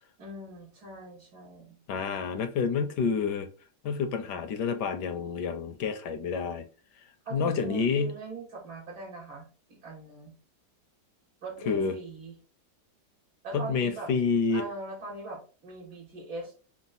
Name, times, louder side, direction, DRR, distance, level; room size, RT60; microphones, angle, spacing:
voice 1, 0.2-1.8 7.2-10.3 11.4-12.3 13.4-14.1 14.5-16.6, right 3 dB, 80° right, 3.3 m, -41 dB
voice 2, 1.9-3.5 3.8-6.7 7.3-8.1 11.7-11.9 13.5-14.6, left 5 dB, 70° left, 1.1 m, -28 dB
5.9 x 2.0 x 4.1 m
omnidirectional pair, 2.1 m